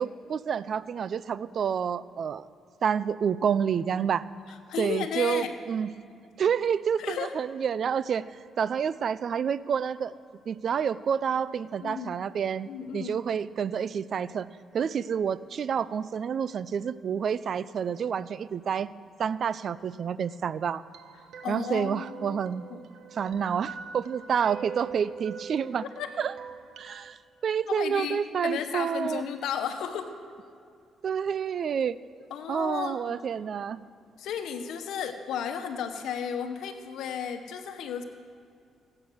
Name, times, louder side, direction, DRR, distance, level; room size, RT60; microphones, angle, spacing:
voice 1, 0.0-2.5 2.8-4.3 4.8-5.9 6.4-8.3 8.6-10.1 10.5-14.5 14.7-18.9 19.2-20.8 21.5-22.7 23.1-25.8 26.2-26.3 26.8-27.2 27.4-29.2 31.0-32.0 32.5-33.8, right 7 dB, 55° right, 17 dB, 0.4 m, -28 dB
voice 2, 4.5-5.5 7.0-7.3 11.8-12.1 12.7-13.2 21.2-22.8 26.0-26.1 27.7-30.1 32.3-33.2 34.2-38.0, left 8 dB, 80° left, 8 dB, 1.0 m, -34 dB
sound 1, 20.9-27.1, right 6 dB, 75° right, 1.0 m, -44 dB
16.0 x 8.7 x 6.3 m, 2.3 s
cardioid pair, 90°, 0 cm